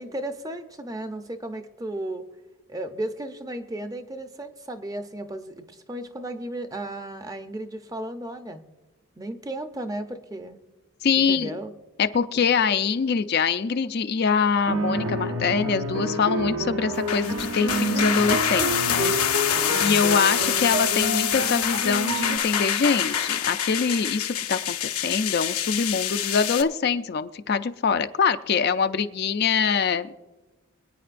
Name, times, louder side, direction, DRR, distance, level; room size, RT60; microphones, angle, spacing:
voice 1, 0.0-2.2 2.7-8.6 9.2-10.6 11.2-11.7 19.7-20.1, right 1 dB, 15° right, 7 dB, 0.6 m, -34 dB
voice 2, 11.0-11.6 12.0-19.1 19.8-30.1, left 6 dB, 45° left, 9 dB, 0.4 m, -24 dB
sound 1, 14.7-22.4, right 1 dB, 60° right, 0.8 m, -29 dB
sound 2, 16.9-26.6, left 9 dB, 85° left, 0.8 m, -26 dB
25.0 x 9.3 x 2.5 m, 1.2 s
head